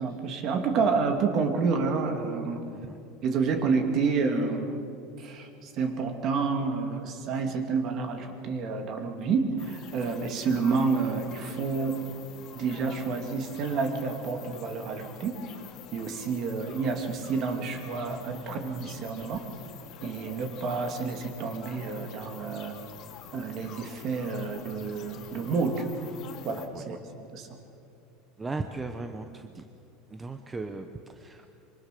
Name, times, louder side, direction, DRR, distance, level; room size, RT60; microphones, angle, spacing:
voice 1, 0.0-2.6 3.2-4.8 5.2-12.0 12.6-15.4 15.9-19.4 20.0-22.8 23.3-25.8 26.4-27.5, right 4 dB, 40° right, 5 dB, 2.6 m, -29 dB
sound 1, 9.6-26.7, left 7 dB, 40° left, 2.7 m, -47 dB
voice 2, 28.4-29.7 30.1-31.5, right 3 dB, 15° right, 6 dB, 0.9 m, -37 dB
25.5 x 24.0 x 6.8 m, 2.7 s
supercardioid pair, 155°, 0 cm